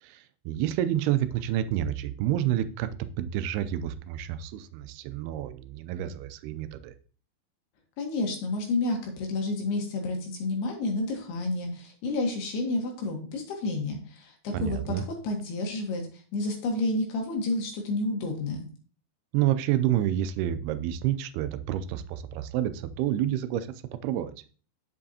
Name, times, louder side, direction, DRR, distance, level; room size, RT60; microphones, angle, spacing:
voice 1, 0.0-6.9 14.5-15.0 19.3-23.7 24.0-24.3, right 12 dB, 85° right, 12 dB, 2.6 m, -29 dB
voice 2, 8.0-18.7, left 2 dB, 85° left, 2 dB, 3.4 m, -30 dB
7.7 x 7.3 x 2.8 m, 0.40 s
omnidirectional pair, 4.5 m